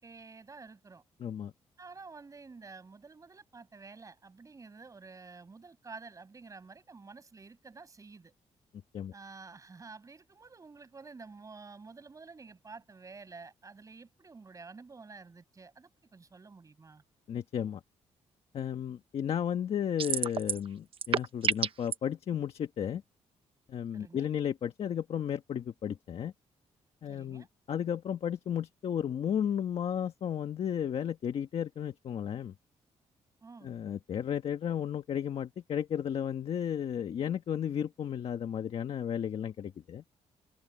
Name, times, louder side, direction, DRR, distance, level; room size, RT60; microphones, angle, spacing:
voice 1, 0.0-1.0 1.8-8.3 9.1-17.0 23.9-24.3 27.1-27.5 33.4-33.7, right 4 dB, 30° right, 7.1 m, -50 dB
voice 2, 1.2-1.5 8.9-9.1 17.3-17.8 18.5-23.0 23.7-26.3 27.0-32.5 33.6-40.0, left 9 dB, 60° left, 1.5 m, -33 dB
sound 1, 20.0-20.7 20.9-21.9, right 7 dB, 50° right, 1.0 m, -29 dB
cardioid pair, 115°, 11 cm